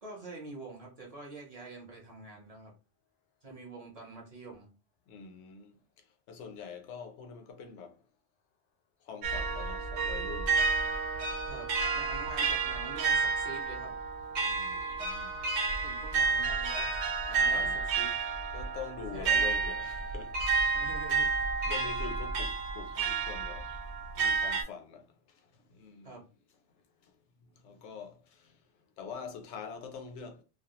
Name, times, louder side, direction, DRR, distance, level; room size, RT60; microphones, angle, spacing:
voice 1, 0.0-2.7 3.4-4.7 11.5-13.9 15.8-17.6 18.0-18.1 19.1-19.5 20.7-21.3 26.0-26.2, right 2 dB, 40° right, 0.7 m, -46 dB
voice 2, 5.1-8.0 9.0-10.7 14.4-15.8 17.5-17.8 18.5-20.8 21.7-23.7 24.2-26.2 26.7-27.2 27.6-28.6 29.0-30.4, left 6 dB, 85° left, 0.9 m, -45 dB
sound 1, 9.2-24.6, right 4 dB, 85° right, 0.9 m, -30 dB
2.3 x 2.0 x 2.9 m
omnidirectional pair, 1.1 m